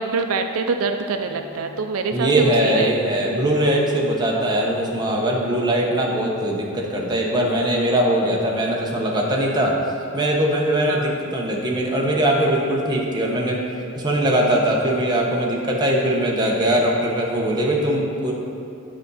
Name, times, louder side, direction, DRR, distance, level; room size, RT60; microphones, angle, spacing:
voice 1, 0.0-3.0 10.9-11.1, right 4 dB, 85° right, 6 dB, 0.4 m, -25 dB
voice 2, 2.1-9.8 10.1-13.6 14.0-18.3, right 1 dB, 20° right, -2 dB, 1.0 m, -21 dB
9.1 x 5.1 x 4.1 m, 2.5 s
head